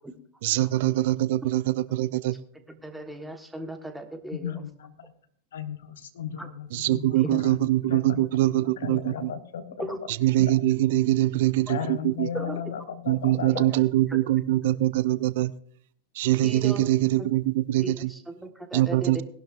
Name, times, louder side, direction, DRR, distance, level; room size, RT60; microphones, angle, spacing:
voice 1, 0.4-2.3 6.7-9.3 10.1-12.3 13.1-15.5 16.1-18.1 18.7-19.2, right 15 dB, 55° right, 17 dB, 0.5 m, -23 dB
voice 2, 2.7-4.5 6.4-6.5 7.3-7.4 9.8-10.0 12.3-12.6 16.4-16.9 17.2-17.3 17.8-19.2, right 1 dB, 5° right, 7 dB, 1.5 m, -36 dB
voice 3, 4.3-5.1 5.5-7.6 7.9-8.2 8.5-10.0 10.4-10.5 11.7-13.7, left 8 dB, 60° left, 9 dB, 1.2 m, -35 dB
19.0 x 11.5 x 2.5 m, 0.64 s
figure-of-eight pair, 90°, 0 cm